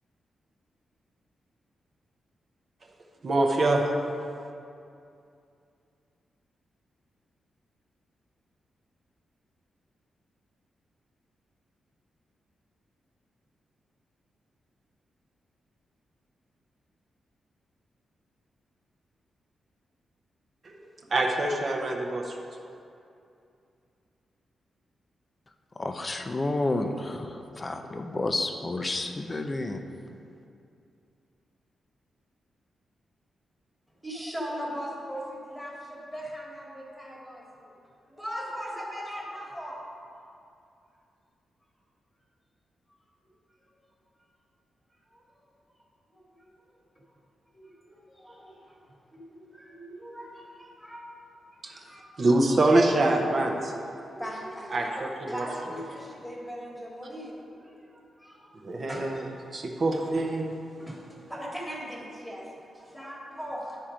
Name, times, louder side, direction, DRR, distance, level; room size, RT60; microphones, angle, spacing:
voice 1, 3.2-3.9 20.6-20.8 21.1-22.4 51.6-51.7 52.2-53.7 54.7-55.5 58.6-59.3 59.5-60.5, right 2 dB, 35° right, 1 dB, 0.6 m, -25 dB
voice 2, 25.8-29.8, left 2 dB, 20° left, 6 dB, 0.4 m, -30 dB
voice 3, 34.0-37.7 38.1-39.8 45.1-45.2 46.1-46.5 47.5-48.7 49.1-51.1 51.5-52.3 53.4-58.5 58.9-59.1 60.1-60.2 60.7-63.8, equal, ahead, -3 dB, 1.4 m, -40 dB
11.0 x 4.4 x 5.0 m, 2.6 s
wide cardioid pair, 175°, 0 cm